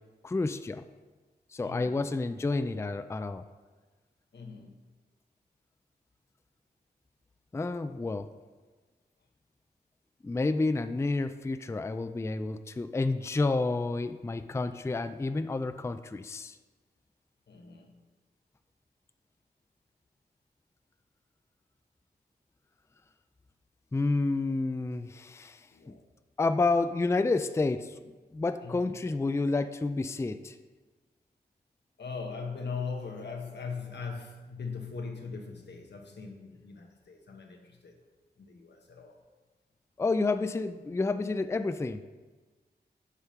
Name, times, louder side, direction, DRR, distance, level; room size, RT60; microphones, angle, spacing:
voice 1, 0.2-0.8 1.5-3.4 7.5-8.3 10.2-16.6 23.9-25.6 26.4-28.0 28.3-30.6 40.0-42.0, left 3 dB, 15° left, 10 dB, 0.3 m, -30 dB
voice 2, 1.6-2.0 4.3-4.8 17.5-18.0 25.1-25.2 25.7-26.1 28.6-29.0 32.0-38.0 38.4-39.2, left 5 dB, 90° left, 3 dB, 1.1 m, -40 dB
8.2 x 5.1 x 5.7 m, 1.3 s
wide cardioid pair, 105°, 17 cm